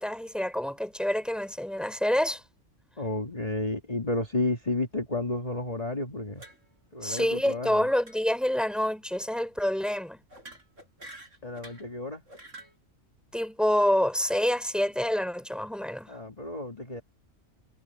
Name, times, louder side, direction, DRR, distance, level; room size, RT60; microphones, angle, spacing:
voice 1, 0.0-2.4 7.0-10.2 13.3-16.1, left 1 dB, ahead, 3.6 m, -27 dB
voice 2, 3.0-6.4 6.9-7.9 11.4-12.2 16.1-17.0, left 2 dB, 30° left, 2.4 m, -31 dB
sound 1, 6.3-6.8 7.1-7.5 8.0-8.2 8.5-8.7 10.3-11.9 12.3-12.7, right 2 dB, 85° right, 7.0 m, -49 dB
omnidirectional pair, 1.3 m